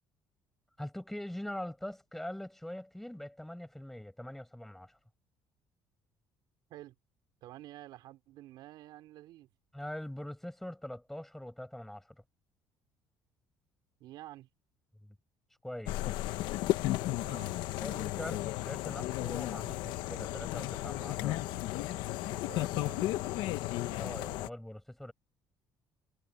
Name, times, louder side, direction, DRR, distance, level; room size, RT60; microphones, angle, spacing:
voice 1, 0.8-5.0 9.7-12.2 15.0-15.2 15.6-16.2 17.8-21.8 23.9-25.1, left 1 dB, 5° left, 7.3 m, -43 dB
voice 2, 7.4-9.5 14.0-14.5 17.2-17.5 22.5-23.6, right 15 dB, 70° right, 5.0 m, -50 dB
sound 1, 15.9-24.5, left 16 dB, 80° left, 1.1 m, -34 dB
cardioid pair, 145°, 7 cm